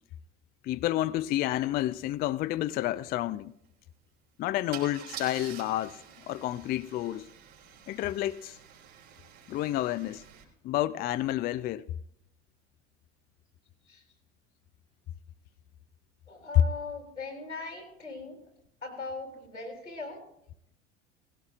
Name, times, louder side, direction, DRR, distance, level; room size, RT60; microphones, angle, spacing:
voice 1, 0.6-3.5 4.4-6.0 6.3-7.3 7.9-8.6 9.5-10.2 10.6-11.9, left 14 dB, 30° left, 0.4 m, -30 dB
Car / Engine starting / Idling, 2.1-2.2 2.5-2.7 4.7-10.4, right 8 dB, 65° right, 3.1 m, -48 dB
voice 2, 16.3-18.4 18.8-20.2, left 3 dB, 90° left, 3.2 m, -40 dB
18.0 x 16.0 x 2.4 m
figure-of-eight pair, 70°, 35 cm